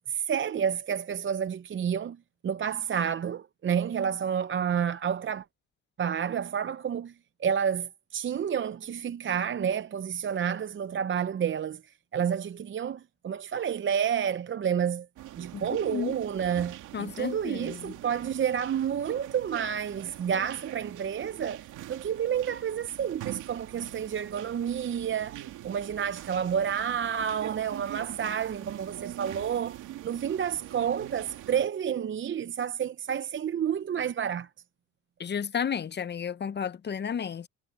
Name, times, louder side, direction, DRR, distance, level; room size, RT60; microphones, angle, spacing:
voice 1, 0.0-2.2 2.4-5.5 6.0-7.1 7.4-15.1 15.4-29.8 30.0-34.5, right 8 dB, 40° right, 0.6 m, -30 dB
sound 1, 15.2-31.7, right 14 dB, 90° right, 2.5 m, -44 dB
voice 2, 16.9-17.9 35.2-37.5, left 7 dB, 35° left, 0.6 m, -32 dB
cardioid pair, 90°, 30 cm